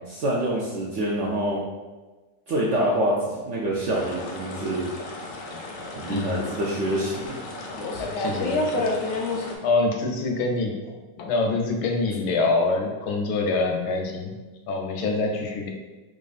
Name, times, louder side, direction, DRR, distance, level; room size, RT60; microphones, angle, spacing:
voice 1, 0.1-1.6 2.5-4.9 6.0-7.4, right 1 dB, 70° right, -5 dB, 0.7 m, -26 dB
sound 1, 3.9-9.6, left 2 dB, 65° left, 0.8 m, -31 dB
voice 2, 6.1-6.4 8.0-8.9 9.6-10.8 11.2-14.3 14.7-15.7, left 3 dB, 90° left, 2 dB, 1.2 m, -25 dB
4.9 x 2.5 x 2.4 m, 1.2 s
omnidirectional pair, 1.7 m